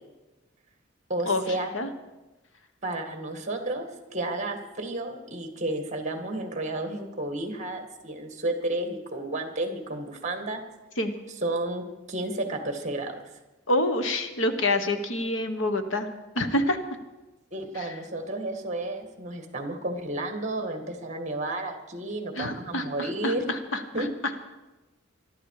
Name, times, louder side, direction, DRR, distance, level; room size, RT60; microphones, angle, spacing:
voice 1, 1.1-1.7 2.8-10.6 11.4-13.2 17.5-23.4 23.9-24.1, right 2 dB, 35° right, 5 dB, 2.1 m, -32 dB
voice 2, 13.7-16.1 16.3-16.8 17.8-17.9 22.3-24.1, left 1 dB, 70° left, 8 dB, 1.4 m, -27 dB
22.5 x 12.5 x 4.9 m, 1.1 s
head